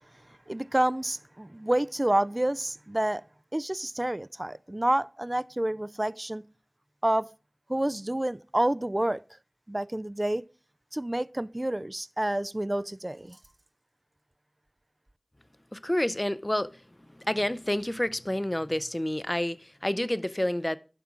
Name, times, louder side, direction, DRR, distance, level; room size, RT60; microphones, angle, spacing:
voice 1, 0.5-3.2 3.5-6.4 7.0-7.3 7.7-9.2 9.7-10.5 10.9-13.4, right 1 dB, 30° right, 0.3 m, -28 dB
voice 2, 15.7-16.8 17.1-20.8, left 1 dB, 25° left, 0.5 m, -29 dB
11.0 x 5.9 x 3.7 m
wide cardioid pair, 40°, 0 cm